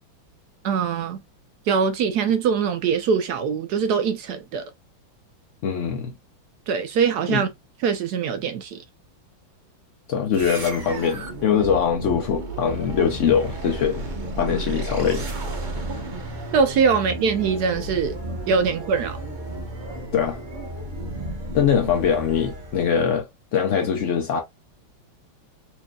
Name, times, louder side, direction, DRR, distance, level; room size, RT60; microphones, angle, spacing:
voice 1, 0.6-1.2 1.7-4.7 6.7-7.5 7.8-8.8 15.9-16.0 16.5-18.2 18.5-19.2, right 6 dB, 75° right, 0.9 m, -22 dB
voice 2, 5.6-6.2 7.3-7.4 10.1-14.0 14.4-15.3 20.1-20.4 21.5-24.4, left 7 dB, 65° left, 0.7 m, -22 dB
sound 1, 10.3-23.0, right 2 dB, 40° right, 0.7 m, -33 dB
4.4 x 3.1 x 2.3 m
omnidirectional pair, 2.2 m